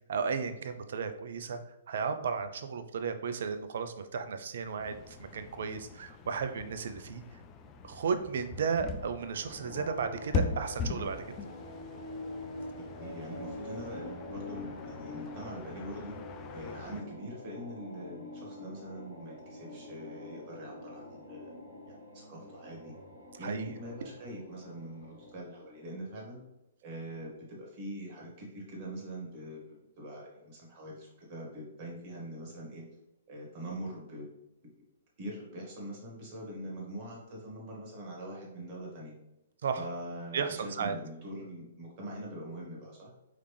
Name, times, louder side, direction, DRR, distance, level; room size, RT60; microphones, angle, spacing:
voice 1, 0.1-1.6 1.9-7.2 7.8-11.3 23.4-23.7 39.6-39.8 40.3-41.0, right 6 dB, 55° right, 10 dB, 0.5 m, -34 dB
sound 1, 4.8-17.0, left 4 dB, 25° left, 0.5 m, -41 dB
sound 2, 9.3-25.9, left 2 dB, 80° left, 1.3 m, -45 dB
voice 2, 12.8-21.5 21.8-22.9 23.4-26.4 26.8-32.9 33.3-34.3 35.2-39.1 39.7-43.1, right 1 dB, 40° right, -2 dB, 1.7 m, -43 dB
4.9 x 3.3 x 3.2 m, 0.89 s
figure-of-eight pair, 120°, 0 cm